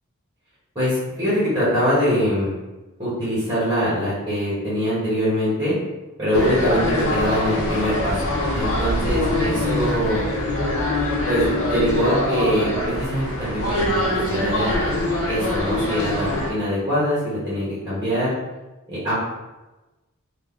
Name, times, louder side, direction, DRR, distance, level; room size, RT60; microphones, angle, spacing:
voice 1, 0.7-2.5 3.0-5.7 6.2-8.2 8.5-10.2 11.1-18.3 18.9-19.1, equal, 15° right, -11 dB, 1.4 m, -23 dB
sound 1, 6.3-16.5, left 1 dB, 75° left, 0.9 m, -23 dB
3.3 x 2.4 x 3.7 m, 1.1 s
head